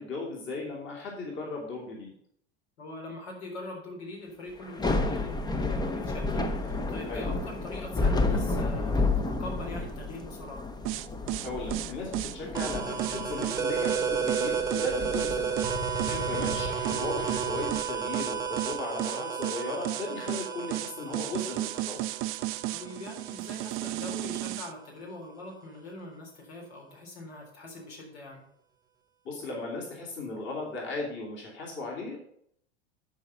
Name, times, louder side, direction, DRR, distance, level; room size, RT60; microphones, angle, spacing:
voice 1, 0.0-2.1 7.1-7.3 11.4-15.6 16.3-22.0 29.2-32.2, left 2 dB, 35° left, -1 dB, 2.7 m, -36 dB
voice 2, 2.8-10.7 16.1-16.3 22.7-28.4, left 2 dB, 70° left, 0 dB, 3.9 m, -43 dB
Thunder / Rain, 4.6-17.8, left 3 dB, 10° left, 0.9 m, -31 dB
sound 1, 10.9-24.7, right 17 dB, 40° right, 0.5 m, -33 dB
sound 2, 12.5-23.9, right 6 dB, 10° right, 1.2 m, -32 dB
11.5 x 4.8 x 5.7 m, 0.68 s
hypercardioid pair, 90°, 33 cm